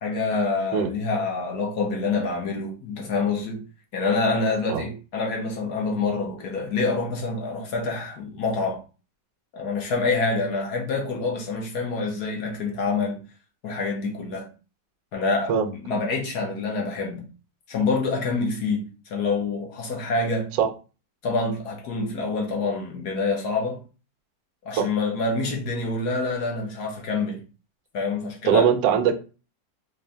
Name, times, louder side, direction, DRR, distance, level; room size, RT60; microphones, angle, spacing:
voice 1, 0.0-3.6 3.9-8.8 9.5-13.2 13.6-14.5 15.1-17.2 17.7-20.5 21.2-23.8 24.6-27.4 27.9-28.7, left 3 dB, 65° left, 1.4 m, -26 dB
voice 2, 28.5-29.1, right 7 dB, 80° right, 1.2 m, -20 dB
4.0 x 2.6 x 3.3 m
omnidirectional pair, 1.9 m